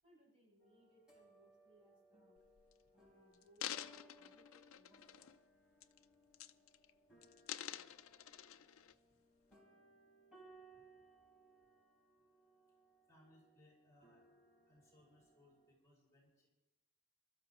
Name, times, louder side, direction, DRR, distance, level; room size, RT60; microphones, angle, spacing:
voice 1, 0.0-2.4 2.9-4.9, equal, 25° right, -5 dB, 6.7 m, -69 dB
sound 1, 0.6-15.7, right 2 dB, 5° right, 4.2 m, -67 dB
sound 2, 2.4-2.7 3.3-5.4 5.8-6.0 6.3-6.9 7.2-8.9 9.5-9.6, left 11 dB, 70° left, 0.5 m, -48 dB
voice 2, 13.1-14.3 14.7-16.5, left 1 dB, 15° left, -4 dB, 5.8 m, -68 dB
27.5 x 13.5 x 3.1 m, 1.0 s
head